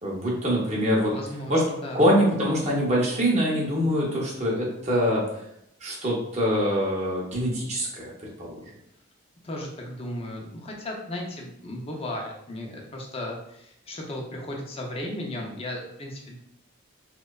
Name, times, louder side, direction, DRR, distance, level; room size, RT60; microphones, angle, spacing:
voice 1, 0.0-1.2 1.5-1.6 1.9-5.3 5.8-8.6, equal, 30° right, -4 dB, 0.6 m, -24 dB
voice 2, 1.1-1.5 1.8-2.1 9.4-16.4, left 1 dB, 30° left, 0 dB, 0.4 m, -35 dB
2.6 x 2.1 x 2.2 m, 0.78 s
head